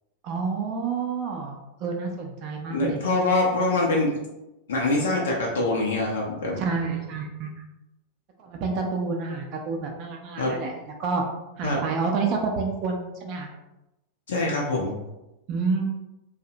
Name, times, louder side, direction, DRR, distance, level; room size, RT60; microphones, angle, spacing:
voice 1, 0.2-3.0 6.6-7.5 8.4-11.2 11.6-13.5 15.5-15.9, right 4 dB, 40° right, 1 dB, 0.4 m, -29 dB
voice 2, 2.7-4.2 4.7-6.6 10.4-10.5 11.6-11.8 14.3-15.0, left 2 dB, 65° left, -2 dB, 0.5 m, -24 dB
2.7 x 2.0 x 2.6 m, 0.94 s
figure-of-eight pair, 90°, 0 cm